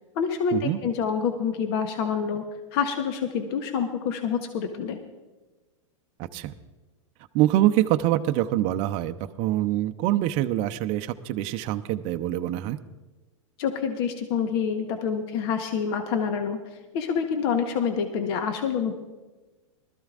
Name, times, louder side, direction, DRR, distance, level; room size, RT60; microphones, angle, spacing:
voice 1, 0.1-2.4 2.7-5.0 13.6-16.6 16.9-18.9, left 7 dB, 50° left, 6 dB, 1.1 m, -27 dB
voice 2, 7.3-12.8, right 14 dB, 40° right, 7 dB, 0.6 m, -25 dB
20.0 x 13.5 x 2.5 m, 1.2 s
hypercardioid pair, 130°, 16 cm